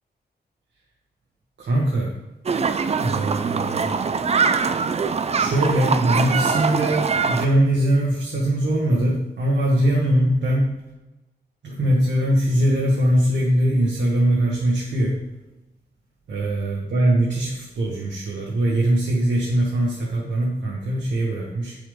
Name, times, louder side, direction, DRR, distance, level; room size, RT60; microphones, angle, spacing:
voice 1, 1.6-2.1 3.0-3.9 5.3-10.7 11.6-15.3 16.3-21.8, right 1 dB, 85° right, -3 dB, 1.5 m, -21 dB
sound 1, 2.5-7.5, right 5 dB, 35° right, 0.4 m, -23 dB
8.2 x 7.0 x 3.7 m, 1.0 s
wide cardioid pair, 140°, 18 cm